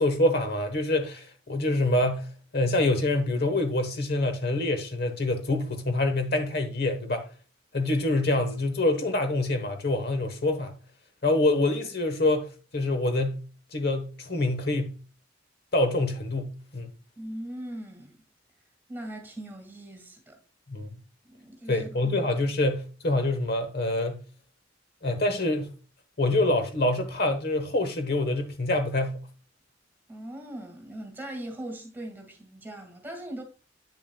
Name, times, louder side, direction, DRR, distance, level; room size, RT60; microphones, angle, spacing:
voice 1, 0.0-2.3 2.5-7.2 7.7-10.7 11.2-13.4 13.7-14.9 15.7-16.9 20.7-20.9 21.7-24.2 25.0-25.7 26.2-29.2, left 2 dB, 55° left, 1.1 m, -26 dB
voice 2, 17.2-18.2 18.9-20.4 21.3-22.1 30.1-33.4, right 1 dB, 10° right, 1.8 m, -40 dB
8.3 x 6.9 x 2.2 m
head